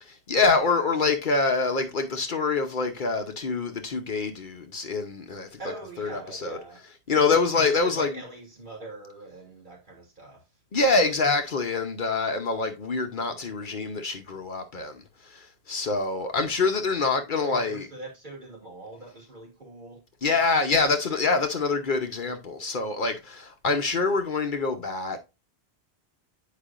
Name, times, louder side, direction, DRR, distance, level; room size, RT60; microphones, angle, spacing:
voice 1, 0.0-5.6 6.0-6.6 7.1-8.1 10.7-17.9 20.2-25.2, left 4 dB, 55° left, 0.9 m, -25 dB
voice 2, 5.6-6.8 7.5-10.5 17.4-20.1, right 2 dB, 50° right, 2.6 m, -42 dB
8.5 x 5.0 x 2.4 m
omnidirectional pair, 1.1 m